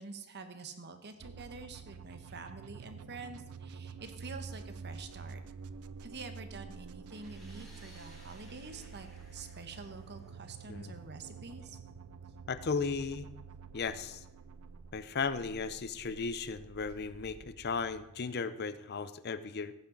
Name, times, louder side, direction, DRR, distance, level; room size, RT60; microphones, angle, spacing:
voice 1, 0.0-5.4 6.0-11.8, right 3 dB, 50° right, 8 dB, 1.2 m, -47 dB
sound 1, 1.2-18.9, right 5 dB, 90° right, 0.5 m, -49 dB
sound 2, 7.1-10.8, equal, ahead, 2.8 m, -59 dB
voice 2, 12.5-13.2 13.7-14.2 14.9-19.7, left 5 dB, 50° left, 14 dB, 0.6 m, -36 dB
17.0 x 9.0 x 3.9 m, 0.91 s
head